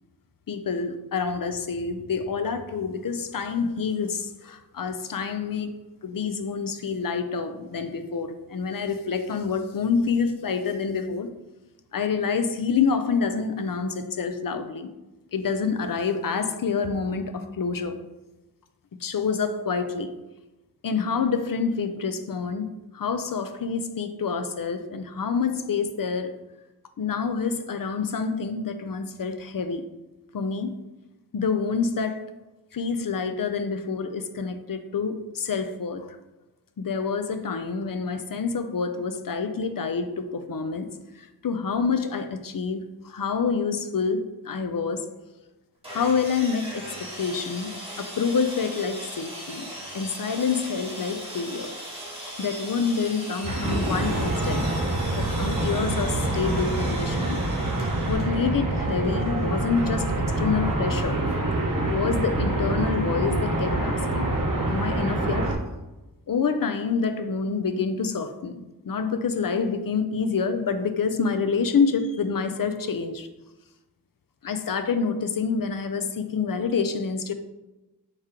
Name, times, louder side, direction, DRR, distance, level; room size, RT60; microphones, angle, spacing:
voice 1, 0.5-5.7 6.0-11.3 11.9-14.9 15.3-18.0 19.0-20.1 20.8-26.3 27.0-29.9 30.3-30.8 31.3-32.3 32.7-36.2 36.8-40.9 41.2-45.1 45.9-51.7 52.4-54.7 55.2-57.5 57.8-61.2 61.7-64.3 64.6-65.6 66.3-73.3 74.4-77.3, left 5 dB, 55° left, 9 dB, 0.5 m, -27 dB
Sawing, 45.8-58.2, equal, 15° right, 1.4 m, -39 dB
sound 1, 53.4-65.5, right 2 dB, 50° right, 0.9 m, -26 dB
4.7 x 3.6 x 2.9 m, 1.0 s
wide cardioid pair, 45°, 41 cm